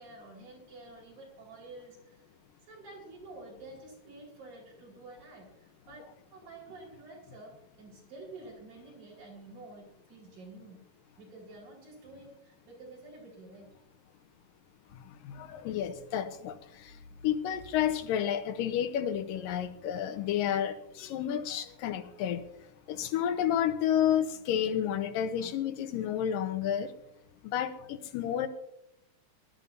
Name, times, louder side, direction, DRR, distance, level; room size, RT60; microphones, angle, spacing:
voice 1, 0.0-2.3 2.7-10.8 11.2-13.8, right 2 dB, 80° right, -3 dB, 6.4 m, -49 dB
voice 2, 15.2-16.6 17.2-22.4 22.9-26.9 27.5-28.5, left 10 dB, 80° left, 9 dB, 2.6 m, -30 dB
22.0 x 13.0 x 2.7 m, 0.81 s
omnidirectional pair, 4.0 m